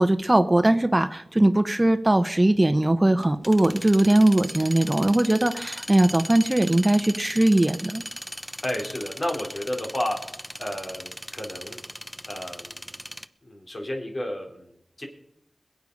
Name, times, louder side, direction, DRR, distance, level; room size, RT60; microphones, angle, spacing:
voice 1, 0.0-8.0, right 1 dB, 25° right, 10 dB, 0.9 m, -20 dB
sound 1, 2.9-13.3, equal, 5° left, 0.7 m, -38 dB
voice 2, 8.6-10.2 10.6-11.8 12.3-12.8 13.4-15.0, left 1 dB, 45° left, 1 dB, 3.7 m, -32 dB
21.5 x 8.5 x 5.4 m, 0.77 s
cardioid pair, 45°, 0 cm